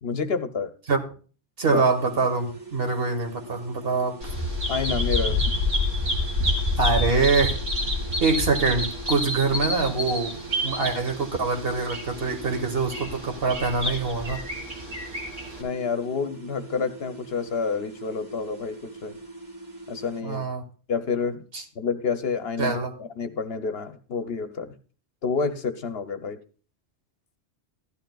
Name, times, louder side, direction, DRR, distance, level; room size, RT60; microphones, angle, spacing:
voice 1, 0.0-0.7 1.7-1.8 4.7-5.4 15.6-19.2 19.9-20.4 20.9-21.4 21.8-24.7 25.2-26.4, left 5 dB, 60° left, 9 dB, 0.9 m, -29 dB
voice 2, 1.6-4.3 6.8-7.6 8.2-10.3 10.6-14.4 20.2-20.6 21.5-21.6 22.6-22.9, right 4 dB, 55° right, 4 dB, 1.5 m, -24 dB
sound 1, 1.7-20.2, right 4 dB, 15° right, 1.9 m, -43 dB
Bird vocalization bird call bird song, 4.2-15.6, left 1 dB, 90° right, 3.1 m, -28 dB
14.5 x 11.5 x 2.3 m, 0.39 s
omnidirectional pair, 1.2 m